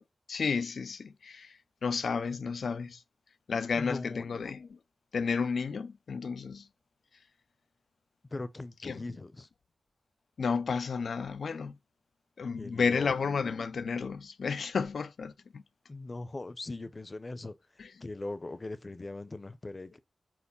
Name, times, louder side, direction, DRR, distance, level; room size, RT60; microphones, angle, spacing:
voice 1, 0.3-3.0 3.5-4.8 5.1-6.7 8.8-9.0 10.4-11.7 12.4-15.6 17.8-17.9, left 5 dB, 75° left, 0.4 m, -32 dB
voice 2, 3.7-4.3 8.3-9.5 12.5-13.1 15.9-17.5 18.0-20.0, left 2 dB, 40° left, 0.7 m, -40 dB
4.7 x 4.1 x 5.4 m
cardioid pair, 45°, 0 cm